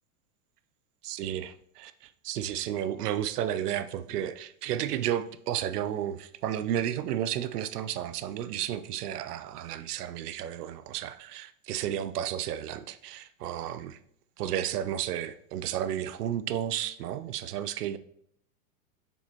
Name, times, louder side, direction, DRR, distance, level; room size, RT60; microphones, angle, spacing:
voice 1, 1.0-1.9 2.2-14.0 14.4-18.0, right 11 dB, 85° right, 0.6 m, -32 dB
7.0 x 6.1 x 2.9 m
supercardioid pair, 180°, 45 cm